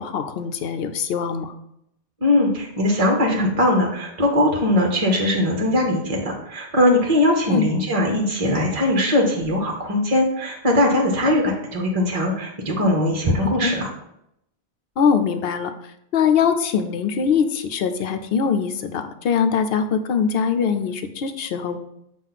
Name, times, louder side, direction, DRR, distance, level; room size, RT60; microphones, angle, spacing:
voice 1, 0.0-1.5 7.5-7.7 13.6-13.8 15.0-15.7 16.1-21.8, left 6 dB, 65° left, 8 dB, 0.8 m, -22 dB
voice 2, 2.2-13.9, left 1 dB, 35° right, 0 dB, 0.9 m, -20 dB
7.3 x 2.4 x 5.7 m, 0.78 s
omnidirectional pair, 1.1 m